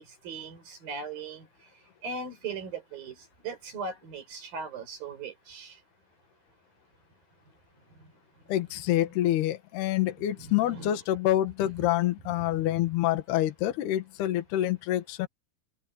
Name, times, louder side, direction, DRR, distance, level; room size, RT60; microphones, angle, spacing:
voice 1, 0.0-1.5 2.0-5.8 8.0-8.1 10.4-11.0 11.6-11.7, right 4 dB, 45° right, 6.5 m, -39 dB
voice 2, 8.5-15.3, left 13 dB, 60° left, 3.3 m, -27 dB
open air
omnidirectional pair, 5.9 m